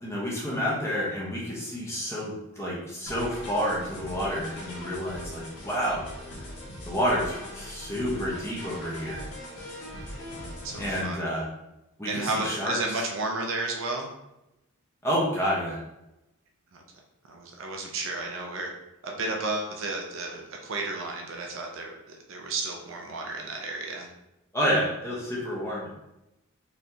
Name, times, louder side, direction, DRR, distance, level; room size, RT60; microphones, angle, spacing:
voice 1, 0.0-6.0 6.9-9.2 10.8-11.5 12.0-12.8 15.0-15.8 24.5-25.9, equal, 10° left, -5 dB, 1.0 m, -29 dB
sound 1, 3.0-11.1, left 1 dB, 80° left, 1.3 m, -40 dB
voice 2, 10.6-11.3 12.1-14.1 16.7-16.8 17.3-18.7 19.0-24.1, right 3 dB, 60° right, 1 dB, 0.6 m, -32 dB
4.2 x 3.3 x 2.8 m, 0.90 s
head